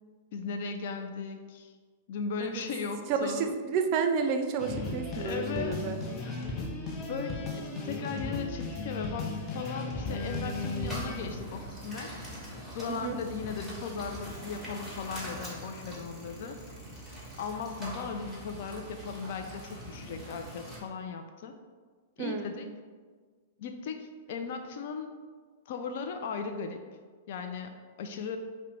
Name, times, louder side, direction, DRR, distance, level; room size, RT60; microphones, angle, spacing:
voice 1, 0.3-1.8 2.1-3.5 5.1-5.9 7.1-12.1 12.5-16.6 17.4-21.5 22.2-22.7 23.6-25.1 25.7-26.8 27.3-28.4, left 5 dB, 60° left, 6 dB, 0.4 m, -37 dB
voice 2, 3.1-6.0 12.9-13.2 22.2-22.5, right 5 dB, 45° right, 6 dB, 0.5 m, -30 dB
sound 1, 4.6-11.2, left 2 dB, 25° left, 0.8 m, -35 dB
sound 2, 10.2-20.8, equal, ahead, 1.4 m, -43 dB
5.1 x 2.1 x 4.3 m, 1.5 s
hypercardioid pair, 115°, 0 cm